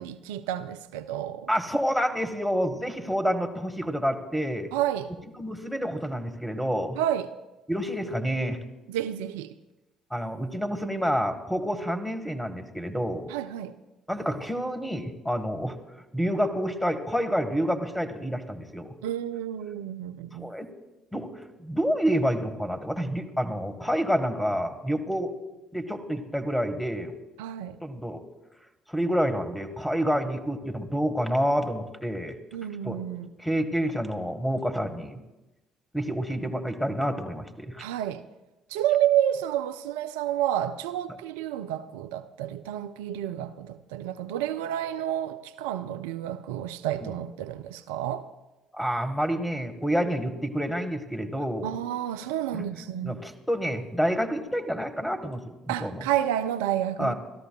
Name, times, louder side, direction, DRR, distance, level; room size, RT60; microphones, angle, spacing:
voice 1, 0.0-1.5 4.7-5.1 7.0-7.3 8.9-9.5 13.3-13.7 19.0-20.5 27.4-27.8 32.5-33.3 37.8-38.3 38.7-48.3 51.6-53.2 55.7-57.1, right 11 dB, 70° right, 0.4 m, -30 dB
voice 2, 1.5-4.7 5.4-7.0 7.7-8.6 10.1-13.3 14.1-15.8 16.1-18.9 20.3-20.7 21.1-25.3 25.7-27.1 27.8-28.2 28.9-32.3 32.8-33.0 33.4-35.2 35.9-37.8 47.0-47.1 48.7-51.7 52.5-56.0 57.0-57.1, equal, 5° left, 1.6 m, -28 dB
29.5 x 13.0 x 2.4 m
figure-of-eight pair, 50°, 0 cm